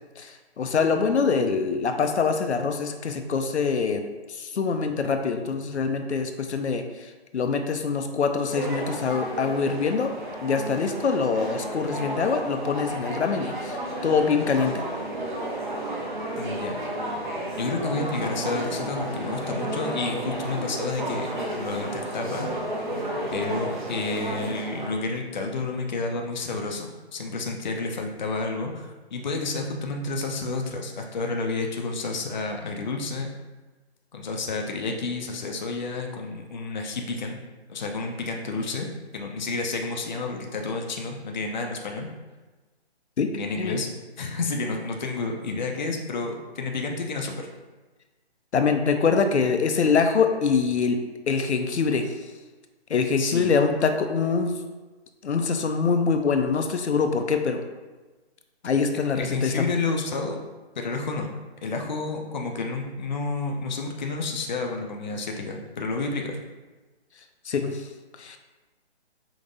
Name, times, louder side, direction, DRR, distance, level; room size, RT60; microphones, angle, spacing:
voice 1, 0.2-4.0 4.3-6.8 7.3-10.1 10.4-13.8 14.0-14.8 43.2-43.3 43.6-43.8 48.5-51.0 51.3-52.1 52.9-54.5 55.2-57.6 58.6-59.7 67.5-67.8 68.2-68.4, left 5 dB, 90° left, 6 dB, 0.6 m, -24 dB
sound 1, 8.5-24.9, right 1 dB, 45° right, 0.8 m, -32 dB
voice 2, 16.4-16.8 17.6-21.3 21.6-22.5 23.3-33.3 34.1-37.4 37.7-38.9 39.1-42.1 43.4-43.9 44.2-47.5 53.2-53.5 59.2-60.4 60.8-61.3 61.6-66.4, left 3 dB, 45° left, 2 dB, 0.5 m, -30 dB
5.2 x 2.9 x 2.6 m, 1.2 s
hypercardioid pair, 160°, 33 cm